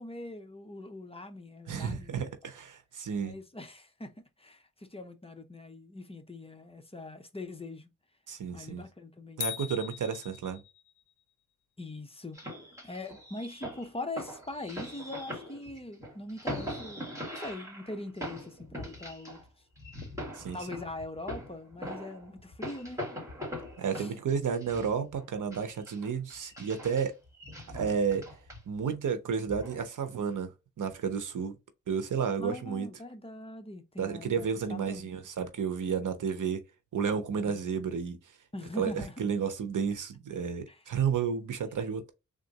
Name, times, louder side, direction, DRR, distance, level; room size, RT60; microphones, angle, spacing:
voice 1, 0.0-2.1 3.2-7.9 8.5-9.4 11.8-12.4 12.8-19.4 20.5-23.0 23.9-24.1 32.4-35.1 37.5-37.7 38.5-39.1 40.7-40.8, left 2 dB, 20° left, 0.6 m, -42 dB
voice 2, 1.7-3.3 8.3-8.8 9.4-10.6 20.3-20.6 23.8-27.1 27.7-28.3 28.7-31.5 31.9-32.9 34.0-36.6 36.9-38.2 38.8-38.9 39.2-42.1, right 6 dB, 75° right, 0.9 m, -32 dB
sound 1, 9.4-11.0, left 10 dB, 70° left, 0.6 m, -39 dB
sound 2, 12.3-19.5 19.7-25.2 25.5-28.9 29.5-29.8, equal, 10° right, 2.0 m, -41 dB
3.6 x 2.5 x 4.0 m
wide cardioid pair, 95°, 31 cm